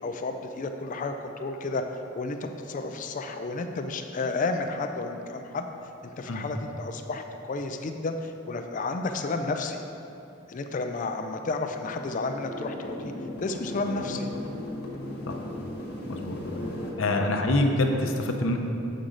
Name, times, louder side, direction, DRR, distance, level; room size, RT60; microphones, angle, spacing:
voice 1, 0.0-1.8 2.1-5.7 6.0-9.8 10.5-13.1 13.4-14.3, left 3 dB, 40° left, 6 dB, 0.4 m, -32 dB
sound 1, 11.9-16.9, left 1 dB, 55° left, 1.4 m, -36 dB
voice 2, 17.0-18.6, left 2 dB, 75° left, 3 dB, 0.7 m, -25 dB
7.3 x 6.5 x 3.8 m, 2.9 s
head